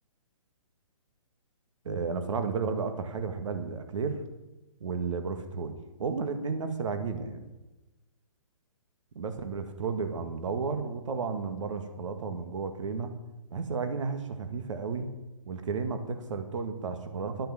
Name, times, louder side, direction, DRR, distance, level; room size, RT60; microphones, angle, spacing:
voice 1, 1.8-4.2 4.8-7.4 9.2-13.2 13.5-15.1 15.5-17.5, right 5 dB, 65° right, 8 dB, 1.9 m, -33 dB
12.0 x 10.0 x 7.3 m, 1.1 s
hypercardioid pair, 140°, 17 cm